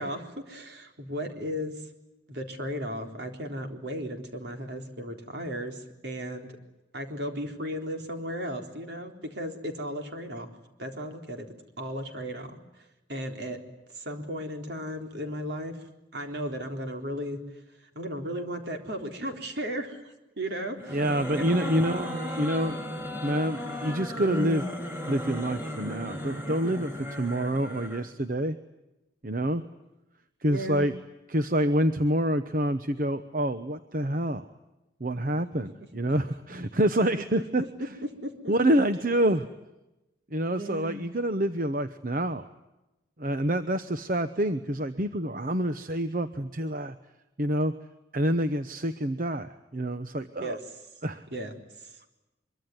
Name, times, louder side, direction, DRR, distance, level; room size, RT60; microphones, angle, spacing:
voice 1, 0.0-1.8 2.3-6.6 6.9-10.5 10.8-11.5 11.8-12.6 13.1-13.6 13.9-15.8 16.1-17.4 18.0-21.8 30.5-30.8 37.6-38.5 40.5-41.0 50.4-50.6 51.3-51.5 51.8-51.9, equal, 65° right, 4 dB, 3.9 m, -35 dB
sound 1, 20.8-28.1, equal, 15° right, 4.4 m, -35 dB
voice 2, 20.9-22.8 23.2-24.7 25.1-28.6 29.2-29.6 30.4-31.0 31.3-34.5 35.0-37.6 38.5-39.5 40.3-42.5 43.2-46.9 47.4-47.7 48.1-50.6 51.0-51.3, right 1 dB, 45° right, 10 dB, 1.0 m, -27 dB
24.0 x 23.5 x 9.5 m, 0.98 s
head